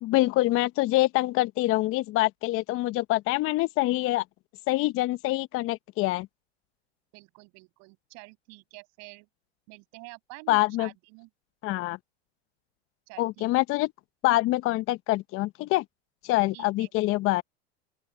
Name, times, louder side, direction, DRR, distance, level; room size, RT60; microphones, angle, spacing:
voice 1, 0.0-4.2 4.7-6.3 10.5-10.9 11.6-12.0 13.2-13.9 14.2-15.8 16.2-17.4, left 18 dB, 40° left, 0.9 m, -25 dB
voice 2, 7.1-9.3 9.7-11.3 13.1-13.5 16.5-16.9, right 30 dB, 55° right, 7.0 m, -48 dB
open air
hypercardioid pair, 100°, 32 cm